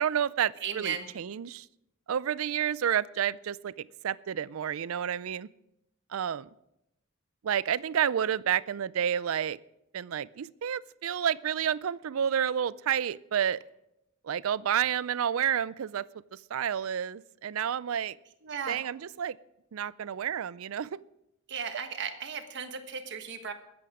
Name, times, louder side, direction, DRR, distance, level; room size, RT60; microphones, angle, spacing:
voice 1, 0.0-1.7 2.1-5.5 6.1-6.5 7.4-9.6 9.9-13.6 14.2-16.1 16.3-18.2 18.7-19.4 19.7-21.0, right 9 dB, 80° right, 20 dB, 0.4 m, -30 dB
voice 2, 0.6-1.1 18.4-18.8 21.5-23.5, right 6 dB, 60° right, 6 dB, 1.4 m, -35 dB
20.5 x 7.9 x 4.9 m, 0.86 s
head